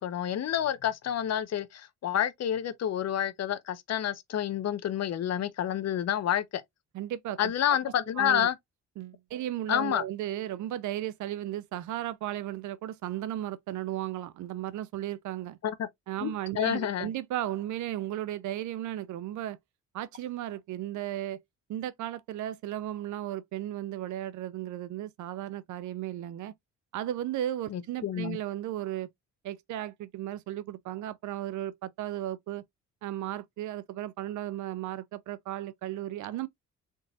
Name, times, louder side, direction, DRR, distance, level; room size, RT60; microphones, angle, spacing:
voice 1, 0.0-6.6 7.4-8.6 9.7-10.0 15.6-15.9 16.2-17.1 27.7-28.4, left 10 dB, 60° left, 0.8 m, -29 dB
voice 2, 6.9-7.5 8.2-8.5 9.0-15.6 16.1-19.6 19.9-21.4 21.7-26.5 26.9-29.1 29.4-32.6 33.0-36.5, right 13 dB, 75° right, 0.5 m, -35 dB
4.0 x 3.7 x 2.3 m
cardioid pair, 90°, 30 cm